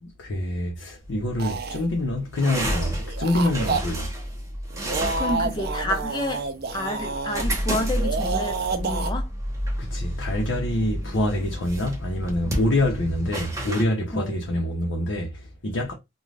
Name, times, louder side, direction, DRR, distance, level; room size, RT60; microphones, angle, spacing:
voice 1, 0.0-4.1 9.8-15.9, left 1 dB, 65° left, 0.7 m, -26 dB
sound 1, 1.0-13.8, equal, 15° right, 0.8 m, -31 dB
sound 2, 1.4-1.8 3.0-3.8 4.7-7.4 7.9-9.1, right 3 dB, 50° right, 0.5 m, -29 dB
voice 2, 5.2-6.5 6.7-9.3 14.1-14.4, left 1 dB, 20° left, 0.5 m, -29 dB
2.5 x 2.2 x 3.2 m
head